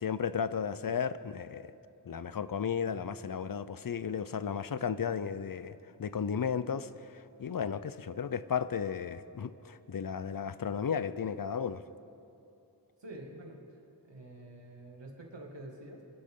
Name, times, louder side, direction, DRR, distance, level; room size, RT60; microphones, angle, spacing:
voice 1, 0.0-1.7 2.1-6.9 7.4-11.8, left 7 dB, 55° left, 15 dB, 0.6 m, -34 dB
voice 2, 13.0-13.6 14.0-16.0, right 1 dB, 85° right, 0 dB, 2.4 m, -47 dB
26.5 x 12.0 x 3.8 m, 2.7 s
wide cardioid pair, 55°, 42 cm